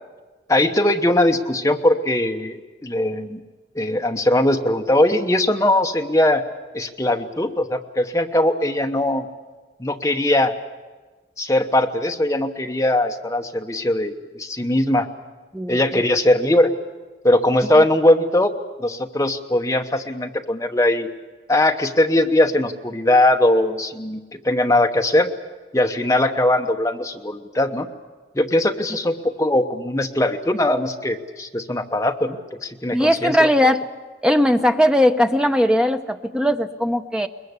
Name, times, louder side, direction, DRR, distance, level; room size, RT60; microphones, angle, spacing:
voice 1, 0.5-3.4 3.7-6.4 6.7-9.3 9.8-10.5 11.4-15.1 15.7-16.7 17.2-18.5 18.8-21.1 21.5-24.2 24.4-25.3 25.7-27.9 28.3-32.4 32.6-33.4, left 1 dB, 15° left, 4 dB, 1.0 m, -20 dB
voice 2, 32.9-33.9 34.2-37.3, equal, 5° right, 7 dB, 0.8 m, -18 dB
22.0 x 21.5 x 8.2 m, 1.3 s
head